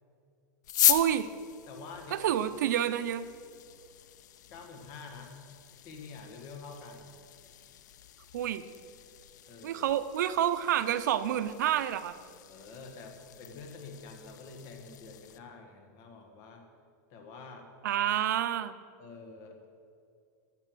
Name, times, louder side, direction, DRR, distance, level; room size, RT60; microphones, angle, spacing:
sound 1, 0.6-15.4, left 12 dB, 85° left, 0.6 m, -37 dB
voice 1, 0.9-1.3 2.1-3.3 8.3-8.6 9.6-12.2 17.8-18.8, right 11 dB, 90° right, 13 dB, 0.6 m, -28 dB
voice 2, 1.7-2.3 4.5-5.4 5.8-7.1 9.5-9.8 12.5-16.6 17.1-17.7 19.0-19.6, left 4 dB, 30° left, 4 dB, 1.6 m, -47 dB
14.5 x 6.6 x 6.2 m, 2.3 s
supercardioid pair, 180°, 9 cm